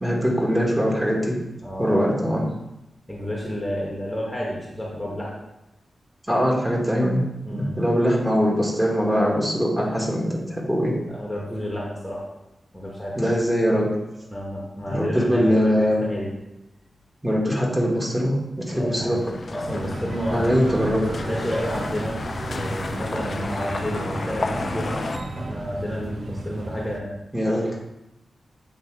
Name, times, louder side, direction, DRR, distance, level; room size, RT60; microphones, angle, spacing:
voice 1, 0.0-1.4 1.8-2.4 6.3-7.2 7.5-10.9 13.2-13.9 14.9-16.0 17.2-19.2 20.3-21.0 27.3-27.7, equal, 10° right, -3 dB, 1.6 m, -22 dB
voice 2, 1.6-2.4 3.1-5.3 7.4-7.8 11.1-12.3 12.7-13.3 14.3-16.3 18.7-19.2 19.5-20.5 20.8-27.2, equal, 10° left, -4 dB, 1.3 m, -30 dB
sound 1, 18.9-25.2, left 3 dB, 50° left, 0.5 m, -32 dB
sound 2, 19.7-27.0, right 2 dB, 50° right, 0.6 m, -33 dB
8.1 x 3.1 x 4.7 m, 0.93 s
wide cardioid pair, 90°, 0 cm